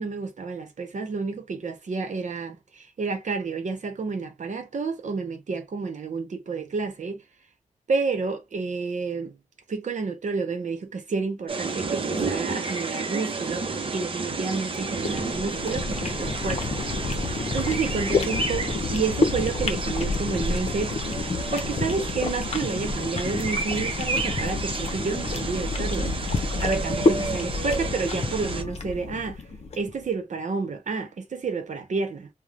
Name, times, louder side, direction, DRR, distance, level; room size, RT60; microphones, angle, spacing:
voice 1, 0.0-7.2 7.9-9.3 9.7-13.7 13.9-16.8 17.5-21.0 21.5-26.1 26.6-29.4 29.8-32.3, right 4 dB, 65° right, 0.9 m, -30 dB
sound 1, 11.5-28.6, right 3 dB, 40° right, 0.6 m, -31 dB
sound 2, 14.7-29.9, left 3 dB, 50° left, 0.7 m, -29 dB
3.2 x 2.2 x 2.5 m
wide cardioid pair, 130°, 13 cm